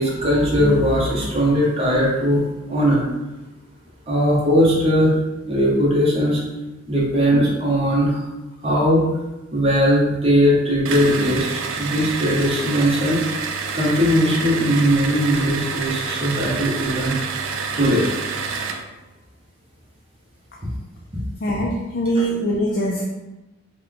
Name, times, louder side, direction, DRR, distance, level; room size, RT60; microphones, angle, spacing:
voice 1, 0.0-3.1 4.1-5.1 5.5-6.4 6.9-8.3 8.6-9.0 9.5-11.5 11.8-13.2 13.7-17.2 17.7-18.1, equal, 30° right, -5 dB, 0.8 m, -19 dB
sound 1, 10.8-18.9, right 5 dB, 70° right, 0.3 m, -28 dB
voice 2, 21.4-23.0, equal, 50° left, -2 dB, 0.4 m, -23 dB
3.2 x 2.2 x 3.7 m, 1.0 s
head